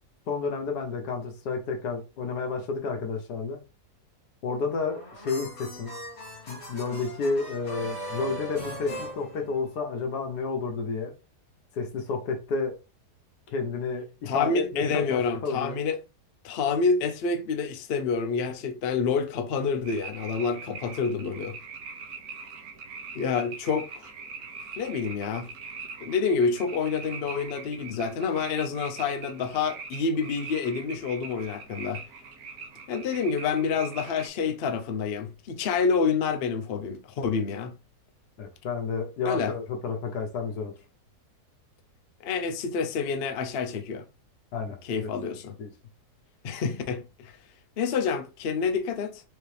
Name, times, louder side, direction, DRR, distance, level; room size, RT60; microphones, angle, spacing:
voice 1, 0.3-3.6 4.4-5.9 6.5-11.1 11.7-12.8 13.5-15.8 38.4-40.7 44.5-44.8 45.6-45.7, left 4 dB, 80° left, 1.5 m, -31 dB
sound 1, 4.7-10.0, right 1 dB, 45° left, 1.6 m, -39 dB
voice 2, 14.3-16.0 16.4-21.5 23.1-24.1 24.8-25.5 26.0-32.0 32.9-37.7 39.2-39.5 42.2-44.0 44.8-45.5 46.4-47.3 47.8-49.2, left 5 dB, 60° left, 0.6 m, -28 dB
sound 2, 19.8-34.3, right 5 dB, 70° right, 1.2 m, -42 dB
4.7 x 2.8 x 3.2 m
omnidirectional pair, 1.7 m